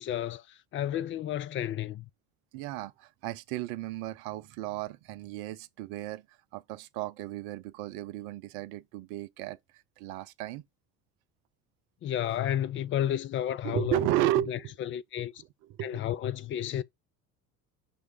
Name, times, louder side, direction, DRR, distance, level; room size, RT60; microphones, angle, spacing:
voice 1, 0.0-2.1 12.0-14.0 14.5-15.4 15.8-16.8, left 11 dB, 30° left, 0.4 m, -32 dB
voice 2, 2.5-10.6 13.6-14.8 15.4-16.2, right 14 dB, 55° right, 0.7 m, -34 dB
6.2 x 3.2 x 4.8 m
figure-of-eight pair, 65°, 45 cm